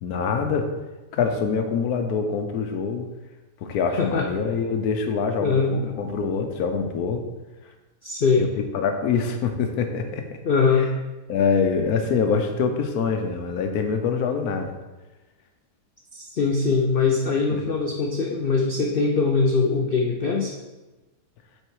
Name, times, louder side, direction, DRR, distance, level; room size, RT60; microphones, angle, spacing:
voice 1, 0.0-0.7 1.1-3.1 3.6-7.2 8.4-10.3 10.8-10.9 11.3-14.7 17.5-17.6, left 5 dB, 70° left, 6 dB, 1.2 m, -25 dB
voice 2, 4.0-4.3 5.4-5.8 8.0-8.4 10.4-10.9 16.1-20.5, left 4 dB, 85° left, 1 dB, 0.4 m, -22 dB
6.5 x 4.1 x 4.7 m, 1.1 s
omnidirectional pair, 1.8 m